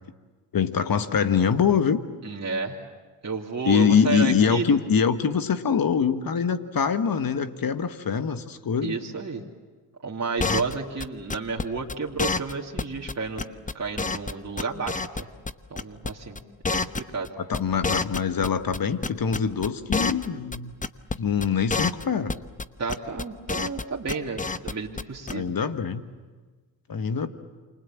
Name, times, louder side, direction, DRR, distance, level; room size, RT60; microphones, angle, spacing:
voice 1, 0.5-2.0 3.7-9.0 10.4-10.6 17.4-20.7 21.1-22.3 25.3-26.0 26.9-27.3, left 6 dB, 45° left, 9 dB, 1.7 m, -24 dB
voice 2, 2.2-2.8 3.2-4.7 8.8-9.4 10.0-15.3 15.7-16.4 16.7-17.3 22.8-25.5, right 4 dB, 35° right, -3 dB, 2.8 m, -31 dB
sound 1, 10.4-10.7 11.0-11.1 11.3-11.6 11.9-12.0 12.2-12.5 12.8-12.9 13.1-13.2 13.4-14.3 14.6-15.5 15.8-16.1 16.3-18.5 18.7-20.3 20.5-20.6 20.8-21.1 21.4-21.5 21.7-22.0 22.3-22.6 22.9-23.8 24.1-24.7 25.0-25.1 25.3-25.4, left 4 dB, 15° left, 1.0 m, -27 dB
28.5 x 25.5 x 7.5 m, 1.4 s
hypercardioid pair, 50°, 47 cm